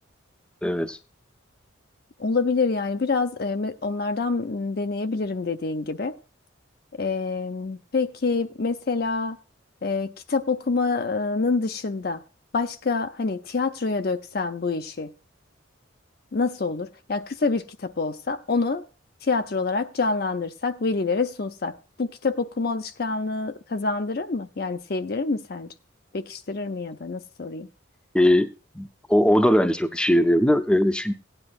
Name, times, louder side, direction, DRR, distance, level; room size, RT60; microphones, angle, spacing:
voice 1, 0.6-1.0 28.1-28.5 28.8-31.1, equal, 5° left, 0.6 m, -20 dB
voice 2, 2.2-6.2 7.0-9.4 9.8-12.2 12.5-15.1 16.3-18.8 19.2-21.7 22.0-25.7 26.1-27.7, left 4 dB, 50° left, 0.6 m, -26 dB
16.5 x 9.8 x 2.4 m
head